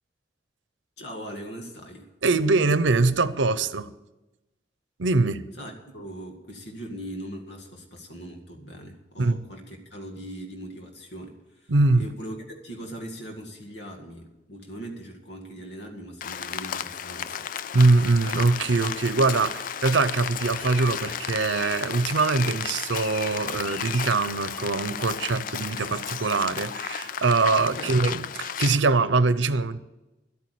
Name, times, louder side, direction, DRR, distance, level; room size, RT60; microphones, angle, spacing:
voice 1, 1.0-2.1 5.6-17.5 27.6-28.0, right 1 dB, 65° left, 2 dB, 2.1 m, -40 dB
voice 2, 2.2-3.9 5.0-5.5 9.2-9.4 11.7-12.1 17.7-29.8, right 3 dB, 85° right, 14 dB, 0.7 m, -23 dB
Rain, 16.2-28.8, left 8 dB, 45° left, 0.3 m, -33 dB
12.5 x 8.7 x 8.3 m, 1.0 s
head